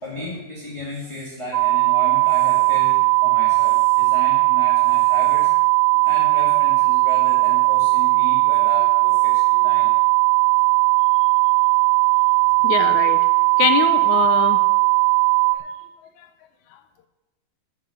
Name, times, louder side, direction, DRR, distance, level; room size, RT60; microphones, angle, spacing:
voice 1, 0.0-5.5 6.0-9.9, left 1 dB, 10° left, -5 dB, 1.6 m, -34 dB
sound 1, 1.5-15.6, right 34 dB, 80° right, 2.6 m, -17 dB
voice 2, 12.6-13.2 13.6-14.6 15.6-15.7 16.2-16.3 16.7-16.8, left 9 dB, 75° left, 9 dB, 1.8 m, -23 dB
12.5 x 7.6 x 6.5 m, 1.1 s
omnidirectional pair, 4.0 m